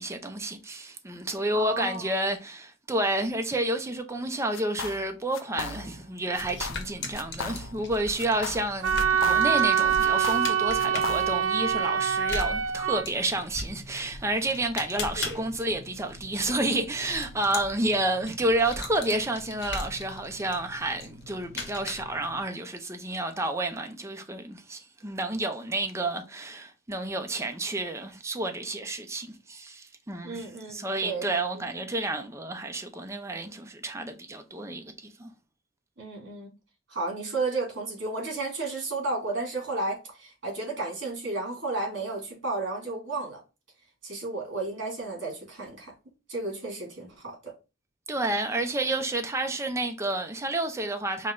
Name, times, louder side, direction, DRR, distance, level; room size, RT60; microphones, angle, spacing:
voice 1, 0.0-35.3 48.1-51.3, right 1 dB, 15° right, 0.6 m, -30 dB
voice 2, 1.5-2.1 30.2-31.3 36.0-36.5 36.9-43.4 44.0-45.9 46.3-47.5, right 3 dB, 65° right, 2.5 m, -33 dB
sound 1, 4.5-5.1 5.3-6.1 6.4-6.9 7.1-7.9 8.2-9.7 10.0-11.5, left 5 dB, 80° left, 0.5 m, -37 dB
sound 2, 6.3-22.4, left 3 dB, 60° left, 1.1 m, -40 dB
Wind instrument woodwind instrument, 8.8-13.0, right 8 dB, 80° right, 0.4 m, -24 dB
5.2 x 2.2 x 3.8 m
head